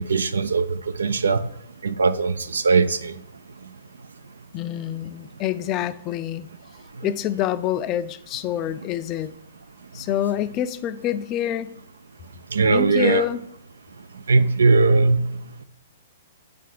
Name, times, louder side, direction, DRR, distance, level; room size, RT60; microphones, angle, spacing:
voice 1, 0.0-1.4 1.8-3.1 12.5-13.2 14.3-15.3, right 4 dB, 90° right, 0.4 m, -19 dB
voice 2, 4.5-6.5 7.0-9.3 9.9-11.7 12.7-13.4, left 11 dB, 30° left, 0.3 m, -26 dB
7.9 x 3.4 x 4.9 m
hypercardioid pair, 135°, 0 cm